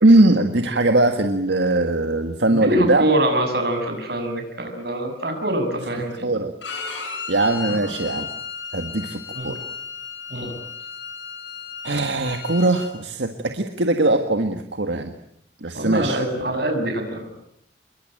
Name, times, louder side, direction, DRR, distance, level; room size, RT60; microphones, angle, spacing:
voice 1, 0.0-3.1 6.2-6.5 6.9-7.0 7.3-8.3 8.7-9.6 11.8-15.1 15.6-16.2, right 2 dB, 80° right, 6 dB, 1.7 m, -20 dB
voice 2, 2.5-6.3 7.7-7.9 9.3-9.5 10.3-10.5 15.7-17.3, right 1 dB, 60° right, 5 dB, 6.5 m, -24 dB
Bowed string instrument, 6.6-12.9, left 6 dB, 85° left, 7.9 m, -34 dB
27.5 x 22.5 x 9.0 m, 0.75 s
head